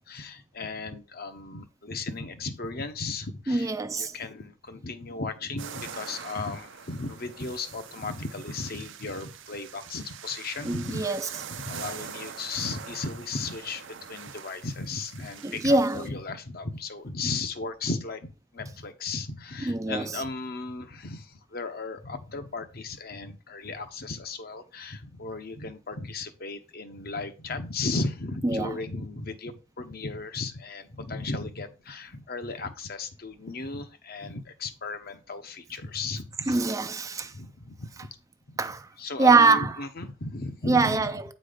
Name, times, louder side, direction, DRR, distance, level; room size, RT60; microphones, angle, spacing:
voice 1, 0.1-11.2 11.6-36.6 37.3-37.9 38.5-38.6 39.0-41.1, left 3 dB, 50° left, 0.9 m, -35 dB
voice 2, 3.5-4.1 10.6-11.3 15.4-16.0 19.7-20.2 28.4-28.7 36.5-37.3 38.6-38.9 39.2-39.7 40.7-41.3, right 3 dB, 15° right, 0.4 m, -23 dB
sound 1, 5.6-16.1, right 7 dB, 70° right, 0.7 m, -43 dB
8.5 x 4.1 x 5.0 m
head